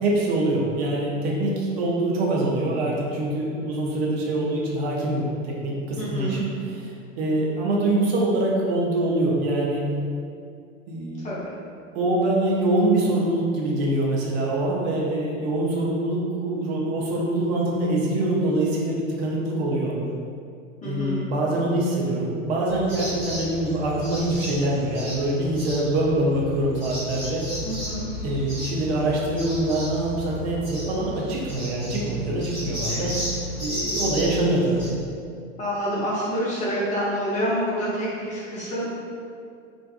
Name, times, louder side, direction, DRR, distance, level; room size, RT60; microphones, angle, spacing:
voice 1, 0.0-9.9 10.9-11.3 11.9-20.0 20.8-27.4 28.2-33.2 33.6-34.9, right 1 dB, 55° right, -3 dB, 0.6 m, -24 dB
voice 2, 6.0-6.4 11.2-11.5 20.8-21.3 27.6-28.1 32.9-33.1 35.6-38.9, equal, 20° left, -8 dB, 0.6 m, -27 dB
sound 1, 22.7-34.9, left 1 dB, 85° right, 1.3 m, -33 dB
2.5 x 2.2 x 2.4 m, 2.4 s
figure-of-eight pair, 80°, 38 cm